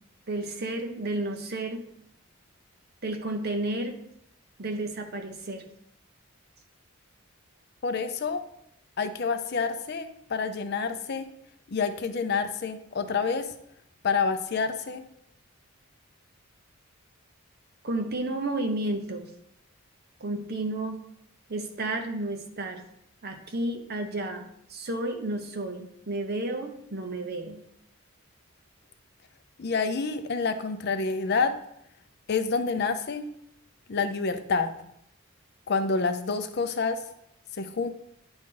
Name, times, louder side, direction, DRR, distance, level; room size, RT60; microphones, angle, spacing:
voice 1, 0.3-1.8 3.0-4.0 4.6-5.6 17.8-19.3 20.2-21.0 21.5-22.8 23.2-24.4 24.7-27.6, right 2 dB, 45° right, 5 dB, 0.8 m, -32 dB
voice 2, 7.8-8.4 9.0-11.3 11.7-13.5 14.0-15.0 29.6-31.6 32.3-33.2 33.9-34.7 35.7-37.0 37.6-37.9, left 4 dB, 50° left, 9 dB, 0.5 m, -28 dB
9.7 x 3.9 x 3.8 m, 0.75 s
head